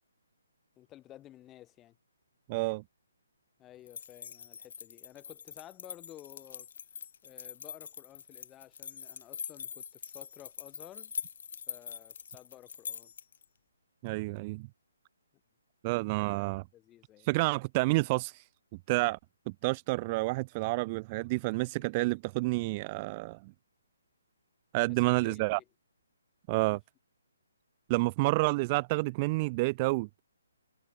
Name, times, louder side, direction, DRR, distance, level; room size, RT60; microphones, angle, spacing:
voice 1, 0.8-2.0 3.6-6.7 7.2-11.1 11.7-13.1 16.2-17.3 21.7-21.8 24.8-25.6 26.7-26.8 28.2-28.3, left 13 dB, 15° left, 5.6 m, -53 dB
voice 2, 2.5-2.8 14.0-14.7 15.8-16.6 17.2-18.4 18.9-19.2 19.6-23.5 24.7-25.6 26.5-26.8 27.9-30.1, right 24 dB, 30° right, 0.6 m, -29 dB
sound 1, 3.9-13.4, left 7 dB, 55° left, 3.0 m, -44 dB
hypercardioid pair, 150°, 0 cm